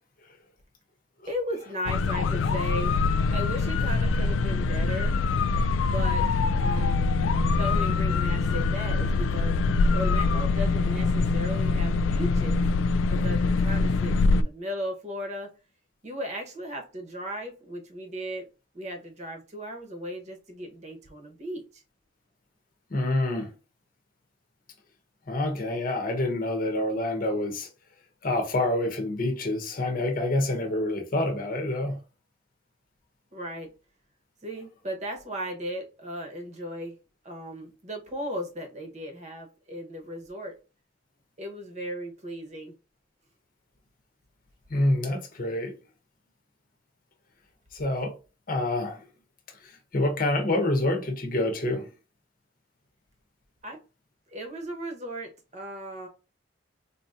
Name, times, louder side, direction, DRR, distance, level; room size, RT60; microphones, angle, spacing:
voice 1, 1.3-3.0 3.3-5.2 5.9-6.2 6.6-7.2 7.5-9.6 9.9-12.7 13.1-15.5 16.0-18.5 18.7-21.8 33.3-33.7 34.4-37.0 37.2-40.5 41.4-42.7 53.6-53.8 54.3-56.1, equal, 35° right, 0.9 m, -36 dB
sound 1, 1.8-14.4, left 3 dB, 85° left, 0.3 m, -24 dB
voice 2, 22.9-23.5 25.3-27.7 28.2-32.0 44.7-45.7 47.7-48.1 48.5-49.0 49.6-51.9, left 1 dB, 45° left, 0.9 m, -27 dB
4.1 x 2.8 x 2.4 m
head